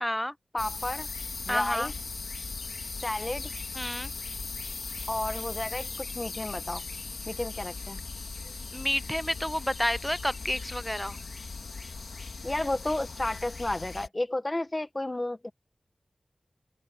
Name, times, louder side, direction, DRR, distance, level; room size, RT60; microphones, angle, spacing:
voice 1, 0.0-0.3 1.5-1.9 3.7-4.1 8.7-11.2, left 1 dB, 10° left, 0.4 m, -30 dB
voice 2, 0.5-1.1 1.5-1.9 3.0-3.5 5.1-6.9 7.3-8.0 12.4-15.5, left 1 dB, 25° left, 0.9 m, -32 dB
sound 1, 0.6-14.1, left 4 dB, 70° left, 2.2 m, -38 dB
wide cardioid pair, 95°, 0 cm